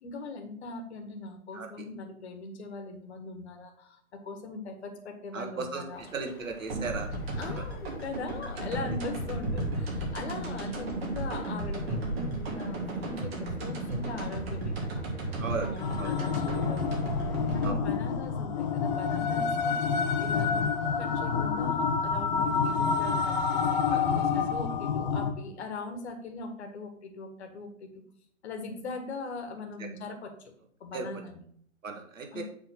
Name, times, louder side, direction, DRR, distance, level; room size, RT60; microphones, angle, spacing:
voice 1, 0.0-6.0 7.4-16.9 17.3-23.8 24.1-28.0 28.4-30.3 30.8-31.4 32.3-32.4, left 3 dB, 50° left, 4 dB, 1.5 m, -41 dB
voice 2, 5.3-5.8 6.1-7.1 7.5-7.6 15.4-15.7 16.0-16.1 17.6-17.8 23.9-24.0 29.8-29.9 30.9-31.1 31.8-32.4, right 4 dB, 70° right, 3 dB, 1.9 m, -35 dB
sound 1, 5.9-17.7, left 4 dB, 80° left, 1.3 m, -45 dB
sound 2, 6.7-19.5, right 2 dB, 45° right, 2.7 m, -34 dB
sound 3, 15.8-25.3, left 6 dB, 35° left, 0.8 m, -28 dB
7.0 x 4.0 x 5.9 m, 0.64 s
hypercardioid pair, 140°, 42 cm